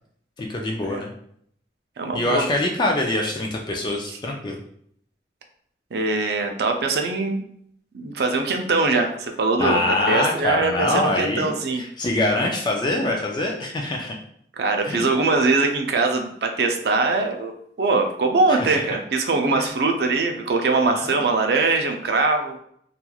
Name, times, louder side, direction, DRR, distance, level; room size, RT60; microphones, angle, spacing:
voice 1, 0.4-1.1 2.1-4.6 9.6-11.5 11.8-14.1 14.9-15.0 18.5-18.8 19.6-19.7 20.9-21.1, left 2 dB, 25° left, 0 dB, 0.3 m, -24 dB
voice 2, 2.0-2.5 4.1-4.2 5.9-7.4 7.9-11.8 14.6-17.5 17.8-22.6, right 3 dB, 60° right, 4 dB, 0.4 m, -22 dB
3.0 x 2.3 x 2.3 m, 0.67 s
head